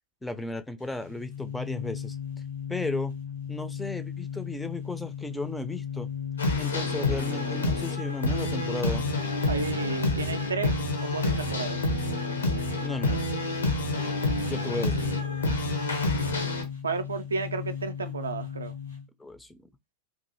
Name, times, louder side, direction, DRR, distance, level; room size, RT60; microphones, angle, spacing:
voice 1, 0.2-2.2 2.7-3.1 3.5-6.1 6.6-9.1 12.8-13.2 14.4-15.2 19.2-19.7, left 2 dB, 5° left, 0.3 m, -35 dB
sound 1, 0.8-19.0, left 8 dB, 90° left, 1.1 m, -35 dB
sound 2, 6.4-16.6, left 1 dB, 75° left, 0.7 m, -29 dB
voice 2, 9.5-11.8 16.8-18.7, right 4 dB, 75° right, 0.3 m, -32 dB
2.5 x 2.3 x 2.7 m
figure-of-eight pair, 90°, 0 cm